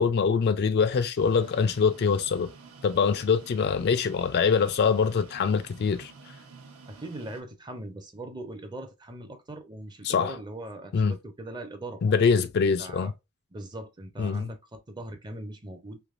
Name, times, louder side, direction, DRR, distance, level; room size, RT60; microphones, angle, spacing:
voice 1, 0.0-2.5 2.8-6.1 10.0-10.4 10.9-11.2 12.0-13.1 14.2-14.5, left 5 dB, 50° left, 0.3 m, -24 dB
sound 1, 1.2-7.4, right 4 dB, 75° right, 0.8 m, -50 dB
voice 2, 6.9-12.5 12.8-13.1 13.5-16.0, right 1 dB, 20° right, 0.5 m, -40 dB
3.3 x 2.9 x 2.4 m
head